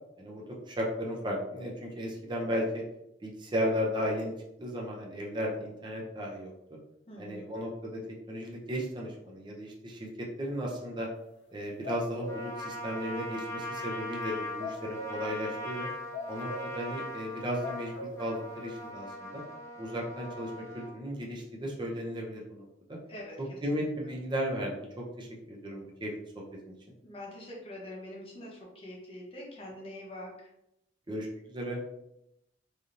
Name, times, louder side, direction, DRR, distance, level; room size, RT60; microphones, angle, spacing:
voice 1, 0.2-2.8 3.2-4.3 4.6-6.5 7.2-11.1 11.5-15.9 16.3-19.4 19.8-23.0 23.6-26.1 26.7-26.8 31.1-31.8, equal, 25° right, -2 dB, 0.6 m, -35 dB
voice 2, 7.1-7.5 23.1-24.2 27.0-30.5, left 1 dB, 30° left, -3 dB, 0.8 m, -45 dB
sound 1, 11.5-12.5 12.9-13.0 14.6-15.3 16.1-16.9 17.2-17.3 17.6-18.4 18.7-18.8, left 3 dB, 75° left, 0.4 m, -40 dB
Trumpet, 12.3-20.9, left 1 dB, 15° left, 0.4 m, -40 dB
3.3 x 2.7 x 2.5 m, 0.85 s
head